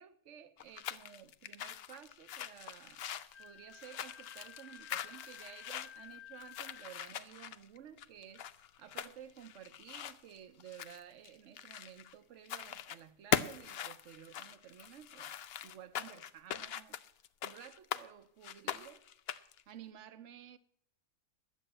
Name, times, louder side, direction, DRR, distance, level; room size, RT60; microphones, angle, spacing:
voice 1, 0.0-3.1 3.4-8.5 8.8-15.4 15.6-17.0 17.4-19.0 19.7-20.6, right 10 dB, 60° right, 0.9 m, -53 dB
sound 1, 0.6-12.1 12.4-13.0 13.3-18.0 18.4-19.6, left 9 dB, 65° left, 0.6 m, -41 dB
Wind instrument woodwind instrument, 3.3-7.0, left 9 dB, 15° left, 0.6 m, -54 dB
11.0 x 7.2 x 8.8 m
omnidirectional pair, 1.6 m